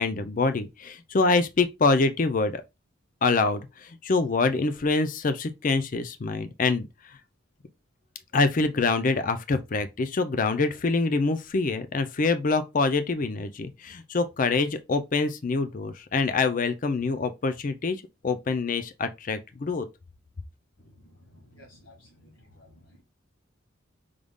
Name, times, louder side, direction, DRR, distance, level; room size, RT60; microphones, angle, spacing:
voice 1, 0.0-2.6 3.2-6.9 8.3-19.9, left 3 dB, 40° left, 0.4 m, -25 dB
voice 2, 21.3-23.0, left 1 dB, 70° left, 1.3 m, -54 dB
5.0 x 2.3 x 3.5 m
head